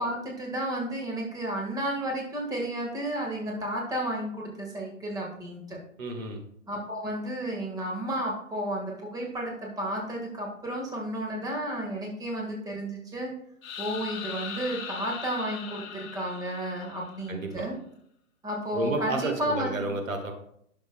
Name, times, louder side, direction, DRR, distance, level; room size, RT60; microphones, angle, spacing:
voice 1, 0.0-5.8 6.7-13.3 13.8-17.8 18.4-20.0, right 1 dB, 10° right, -1 dB, 1.6 m, -32 dB
voice 2, 6.0-6.4 17.3-17.7 18.7-20.3, right 2 dB, 75° right, 3 dB, 1.8 m, -31 dB
sound 1, 13.6-17.4, left 7 dB, 35° left, 1.2 m, -40 dB
11.5 x 6.5 x 2.2 m, 0.69 s
hypercardioid pair, 125°, 40 cm